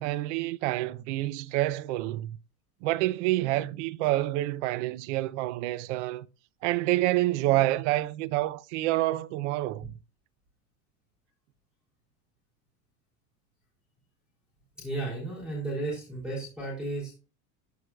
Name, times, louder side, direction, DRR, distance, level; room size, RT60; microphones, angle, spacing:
voice 1, 0.0-2.4 2.8-6.3 6.6-9.9, right 16 dB, 80° right, 0.6 m, -28 dB
voice 2, 14.8-17.1, right 2 dB, ahead, 3.2 m, -34 dB
13.0 x 4.8 x 2.3 m
cardioid pair, 170°, 35 cm